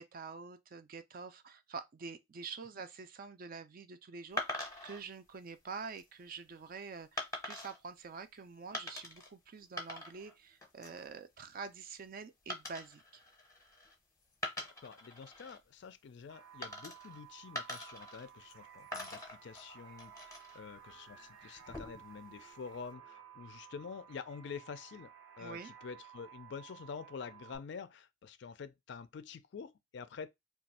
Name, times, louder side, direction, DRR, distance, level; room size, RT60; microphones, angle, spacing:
voice 1, 0.0-13.0 25.4-25.7, right 5 dB, 45° right, 0.4 m, -47 dB
sound 1, 4.4-5.0 5.7-6.0 7.2-7.8 8.7-9.3 9.6-10.3 10.6-11.0 12.5-13.9 14.3-15.6 16.6-17.2 17.5-18.6 18.9-20.6 21.5-22.1, left 1 dB, 15° left, 0.7 m, -43 dB
voice 2, 14.8-25.1 25.4-30.3, left 5 dB, 60° left, 0.3 m, -47 dB
sound 2, 16.3-27.6, right 9 dB, 90° right, 0.9 m, -55 dB
2.5 x 2.3 x 4.1 m
head